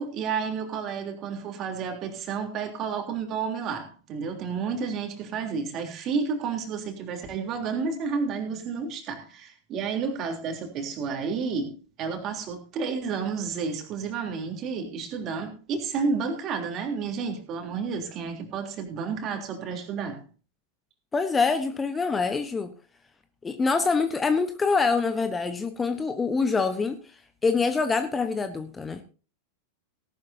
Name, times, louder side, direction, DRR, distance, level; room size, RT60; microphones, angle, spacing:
voice 1, 0.0-20.2, right 5 dB, 35° right, 4 dB, 3.3 m, -31 dB
voice 2, 21.1-22.7 23.4-27.0 27.4-29.0, left 4 dB, 15° left, 10 dB, 1.0 m, -25 dB
18.0 x 12.0 x 2.8 m, 0.36 s
figure-of-eight pair, 90°, 0 cm